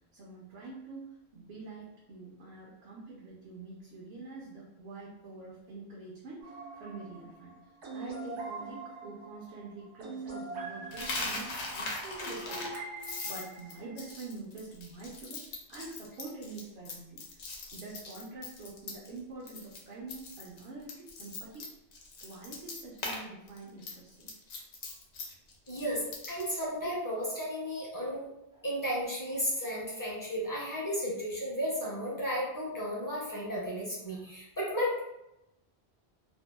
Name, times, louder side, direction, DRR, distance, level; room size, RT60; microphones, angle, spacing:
voice 1, 0.1-17.4 17.7-21.7 22.2-24.3, right 3 dB, 70° right, -4 dB, 0.8 m, -46 dB
sound 1, 6.4-14.2, right 3 dB, 85° right, 1.1 m, -43 dB
Coin (dropping), 10.9-19.2 19.5-19.8 20.1-23.2 23.5-26.6, left 3 dB, 85° left, 0.9 m, -40 dB
voice 2, 25.7-28.3 28.6-35.0, equal, 25° left, -6 dB, 0.5 m, -34 dB
2.6 x 2.2 x 2.2 m, 0.88 s
omnidirectional pair, 1.1 m